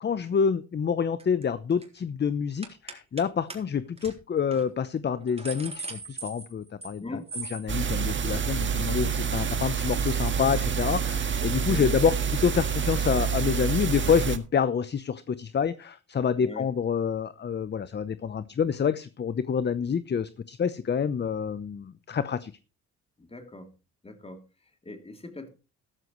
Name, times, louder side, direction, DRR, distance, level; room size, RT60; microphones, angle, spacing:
voice 1, 0.0-7.0 7.4-22.5, left 7 dB, 35° left, 14 dB, 0.8 m, -27 dB
sound 1, 1.2-1.4 1.7-2.0 2.6-3.2 3.5-3.6 4.0-4.1 4.5-4.6 5.1-7.0 7.3-7.6, right 3 dB, 20° right, 3.8 m, -39 dB
sound 2, 7.7-14.4, right 7 dB, 40° right, 1.6 m, -27 dB
voice 2, 11.6-12.0 16.4-16.7 23.2-23.7 24.0-25.5, left 3 dB, 20° left, 5 dB, 3.0 m, -41 dB
13.5 x 13.0 x 3.2 m, 0.31 s
cardioid pair, 90°, 30 cm